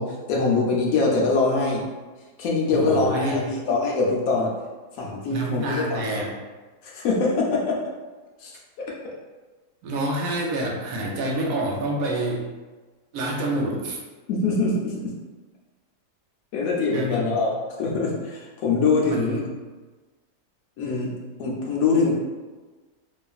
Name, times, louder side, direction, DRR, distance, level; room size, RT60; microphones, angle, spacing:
voice 1, 0.0-1.8 2.4-4.5 4.9-6.2 6.8-7.8 8.4-9.1 14.3-15.0 16.5-19.4 20.8-22.2, left 3 dB, 70° left, -2 dB, 0.9 m, -24 dB
voice 2, 2.7-3.5 5.3-6.3 9.8-12.5 13.1-14.0 16.9-17.3 19.0-19.4, right 1 dB, 70° right, -1 dB, 0.9 m, -27 dB
2.9 x 2.4 x 2.3 m, 1.3 s
omnidirectional pair, 1.7 m